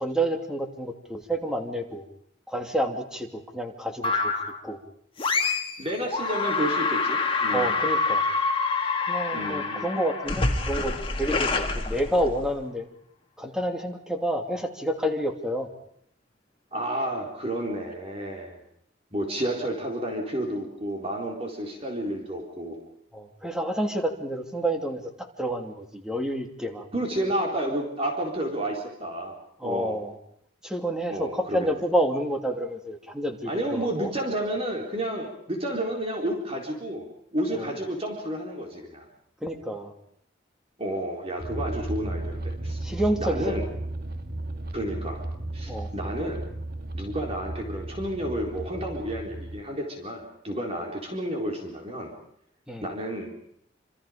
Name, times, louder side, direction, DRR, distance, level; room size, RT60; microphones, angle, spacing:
voice 1, 0.0-2.1 2.5-4.3 4.6-4.8 7.5-8.2 9.1-12.9 13.4-15.7 23.1-26.9 29.6-30.2 30.6-34.1 37.5-37.7 39.4-39.9 42.8-43.7 45.7-45.9 52.7-52.8, right 1 dB, 5° right, 3 dB, 2.9 m, -29 dB
sound 1, 4.0-4.6 5.2-5.8 6.1-12.6, left 3 dB, 30° left, 2.5 m, -26 dB
voice 2, 5.8-7.7 9.3-9.9 16.7-18.6 19.1-22.8 26.9-29.3 29.6-30.0 31.1-31.7 33.5-37.1 37.3-39.1 40.8-42.8 43.2-43.6 44.7-45.2 45.5-46.4 46.9-52.1 52.8-53.3, right 1 dB, 35° right, 1 dB, 4.3 m, -31 dB
sound 2, 41.4-49.6, right 1 dB, 55° right, 2.0 m, -34 dB
27.0 x 27.0 x 5.2 m, 0.70 s
head